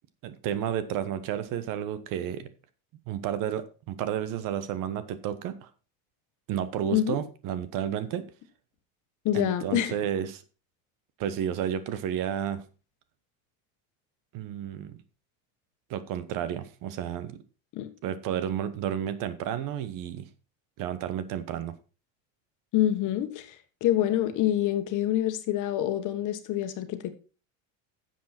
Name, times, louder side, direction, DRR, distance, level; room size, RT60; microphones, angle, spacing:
voice 1, 0.2-2.5 3.1-5.7 6.5-8.3 9.3-10.4 11.2-12.6 14.3-15.0 15.9-17.4 18.0-20.3 20.8-21.8, right 9 dB, 55° right, 1.2 m, -31 dB
voice 2, 9.2-9.9 17.7-17.9 22.7-27.2, left 12 dB, 50° left, 1.5 m, -26 dB
10.0 x 7.5 x 4.3 m
supercardioid pair, 125°, 40 cm